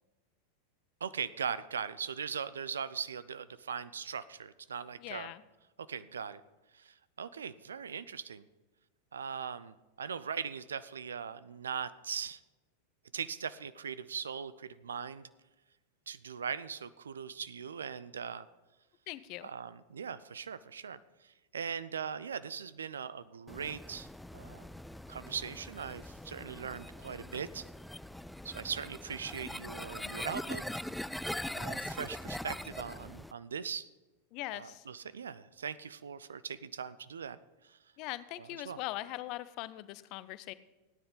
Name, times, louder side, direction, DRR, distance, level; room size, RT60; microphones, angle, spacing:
voice 1, 1.0-5.3 5.9-6.4 6.7-8.5 9.1-12.4 13.1-15.2 16.1-18.5 19.4-24.1 24.3-24.7 25.1-27.7 28.4-30.6 31.6-33.9 34.5-37.4 37.6-37.8 38.4-38.8, right 7 dB, 70° right, 16 dB, 0.5 m, -40 dB
voice 2, 5.0-5.4 19.1-19.5 30.0-30.2 34.3-34.8 38.0-40.5, left 17 dB, 40° left, 16 dB, 0.6 m, -41 dB
sound 1, 23.5-33.3, left 1 dB, 5° left, 0.3 m, -42 dB
17.0 x 9.9 x 3.9 m, 1.1 s
figure-of-eight pair, 90°, 0 cm